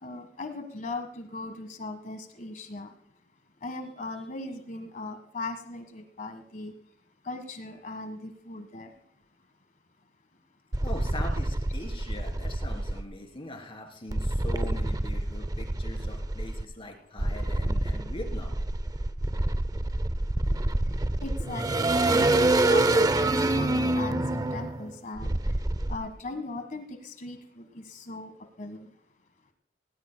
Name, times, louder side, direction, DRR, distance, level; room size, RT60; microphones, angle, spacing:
voice 1, 0.0-2.9 3.6-6.7 7.2-8.9 21.2-21.7 22.1-25.4 25.9-28.3 28.6-28.9, left 2 dB, 45° left, 7 dB, 1.6 m, -38 dB
voice 2, 10.7-18.6, left 1 dB, 30° left, 2 dB, 3.4 m, -41 dB
sound 1, 10.7-13.0 14.1-16.7 17.2-26.0, right 2 dB, 20° right, 0.5 m, -27 dB
19.0 x 18.5 x 2.2 m, 0.72 s
head